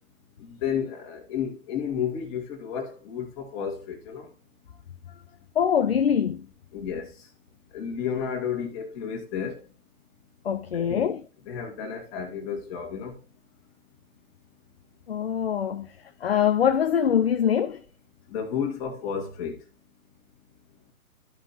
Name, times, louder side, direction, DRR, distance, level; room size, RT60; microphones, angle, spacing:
voice 1, 0.6-4.3 6.7-7.1 7.7-9.6 10.7-11.1 11.5-13.1 18.3-19.6, left 7 dB, 20° left, 2.0 m, -31 dB
voice 2, 5.6-6.5 10.4-11.3 15.1-15.9 16.2-17.8, left 8 dB, 45° left, 0.6 m, -23 dB
14.0 x 5.3 x 2.7 m
figure-of-eight pair, 140°, 45 cm